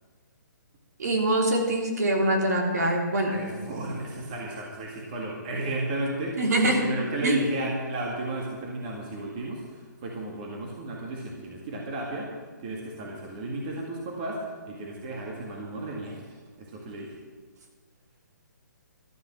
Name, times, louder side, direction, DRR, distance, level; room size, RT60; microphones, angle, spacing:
voice 1, 1.0-3.4 6.4-6.8 7.2-7.3, right 1 dB, 60° right, 1 dB, 3.0 m, -24 dB
voice 2, 3.3-12.3 12.6-17.2, right 2 dB, 25° right, -1 dB, 1.9 m, -33 dB
12.5 x 9.4 x 7.6 m, 1.4 s
hypercardioid pair, 170°, 10 cm